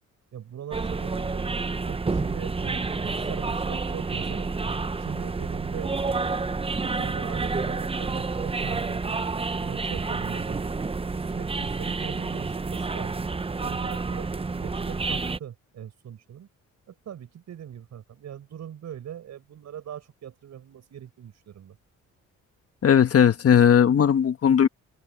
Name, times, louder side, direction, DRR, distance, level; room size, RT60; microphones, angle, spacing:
voice 1, 0.3-1.6 1.9-4.5 5.0-6.3 6.8-9.2 9.6-10.8 11.3-13.3 13.6-16.5 16.9-21.8, right 9 dB, 65° right, 6.2 m, -40 dB
sound 1, 0.7-15.4, right 4 dB, 20° right, 0.8 m, -29 dB
voice 2, 22.8-24.7, left 8 dB, 50° left, 1.6 m, -18 dB
cardioid pair, 90°, 30 cm